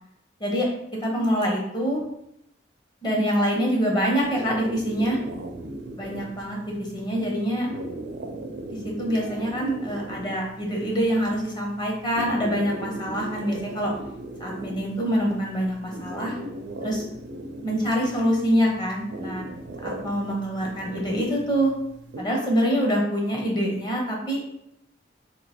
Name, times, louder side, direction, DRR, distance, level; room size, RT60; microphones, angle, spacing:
voice 1, 1.0-2.0 3.0-5.2 6.0-6.6 6.9-7.7 8.7-13.9 14.4-16.4 16.8-17.0 17.6-19.4 19.8-21.7 22.2-24.4, equal, 25° left, -1 dB, 0.8 m, -25 dB
sound 1, 4.2-22.2, right 2 dB, 65° right, 0.4 m, -38 dB
3.0 x 2.7 x 4.2 m, 0.79 s
head